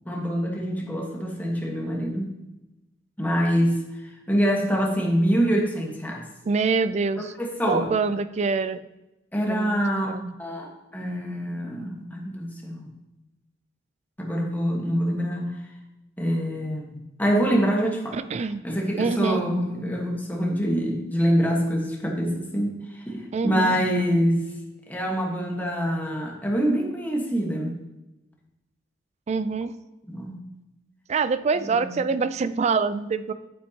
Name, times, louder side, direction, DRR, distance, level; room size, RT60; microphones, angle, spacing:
voice 1, 0.0-2.3 3.2-3.7 4.3-6.2 7.4-7.9 9.3-10.1 10.4-12.9 14.2-15.5 16.2-18.2 18.6-22.7 23.1-24.4 24.9-27.8 30.1-30.3 31.7-32.1, equal, 10° left, -1 dB, 1.3 m, -25 dB
voice 2, 6.5-7.3 7.7-8.8 9.5-10.3 18.1-18.6 19.0-19.4 23.3-23.8 29.3-29.7 31.1-33.3, right 4 dB, 35° right, 14 dB, 0.3 m, -25 dB
8.8 x 8.5 x 2.8 m, 0.98 s
head